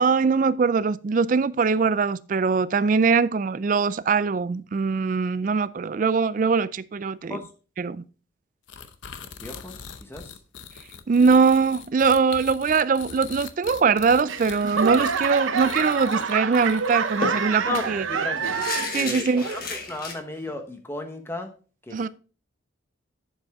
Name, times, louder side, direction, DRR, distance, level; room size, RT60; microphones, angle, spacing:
voice 1, 0.0-7.4 7.8-8.0 11.1-18.0 18.9-19.4 21.9-22.1, right 5 dB, 40° right, 0.3 m, -22 dB
sound 1, 8.7-17.2, left 7 dB, 75° left, 0.7 m, -42 dB
voice 2, 9.4-10.3 17.7-18.5 18.9-21.5 21.8-22.0, left 2 dB, 10° left, 1.0 m, -34 dB
Laughter / Clapping / Crowd, 14.3-19.0 19.4-19.9 20.5-20.6, right 6 dB, 85° right, 0.8 m, -27 dB
sound 2, 16.1-16.3 16.6-16.7 17.2-20.1, left 3 dB, 50° left, 1.5 m, -32 dB
7.8 x 7.1 x 3.5 m
head